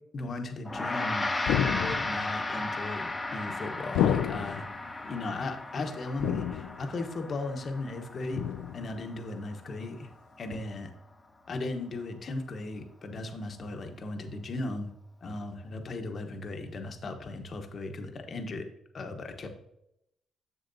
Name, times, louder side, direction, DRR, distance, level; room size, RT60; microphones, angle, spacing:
voice 1, 0.1-1.3 1.6-4.7 5.0-8.4 8.7-10.1 10.4-10.9 11.5-14.9 15.2-18.6 18.9-19.5, left 2 dB, 50° left, 5 dB, 1.0 m, -36 dB
Gong, 0.7-10.2, left 2 dB, 15° left, 0.9 m, -35 dB
sound 1, 1.5-2.3 4.0-4.7 6.2-6.9 8.3-8.9 10.5-10.6, left 10 dB, 90° left, 0.3 m, -29 dB
7.1 x 6.7 x 2.7 m, 0.81 s
cardioid pair, 90°, 0 cm